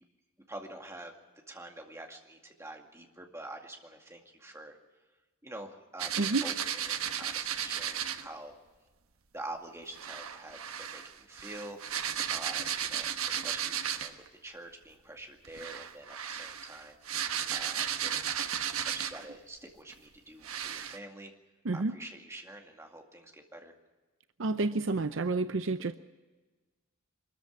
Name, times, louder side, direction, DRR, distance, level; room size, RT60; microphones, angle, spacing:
voice 1, 0.5-1.1 1.5-4.8 5.4-8.5 9.3-11.8 12.3-14.1 14.4-16.9 17.5-18.3 18.8-21.3 21.7-23.7, right 1 dB, 15° right, 2 dB, 2.2 m, -46 dB
sound 1, 6.0-8.3 9.9-14.3 15.4-19.3 19.9-20.0 20.4-21.0, right 9 dB, 90° right, 1.1 m, -34 dB
voice 2, 24.4-25.9, right 3 dB, 60° right, 11 dB, 0.7 m, -29 dB
24.0 x 14.0 x 8.5 m, 1.2 s
head